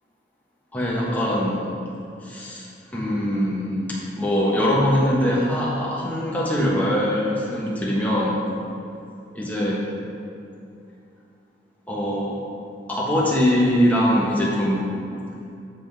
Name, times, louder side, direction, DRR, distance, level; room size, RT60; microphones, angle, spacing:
voice 1, 0.7-1.7 2.2-2.7 2.9-8.4 9.3-9.9 11.9-12.4 12.9-15.0, equal, 10° left, -6 dB, 1.4 m, -22 dB
7.7 x 7.3 x 3.6 m, 2.7 s
head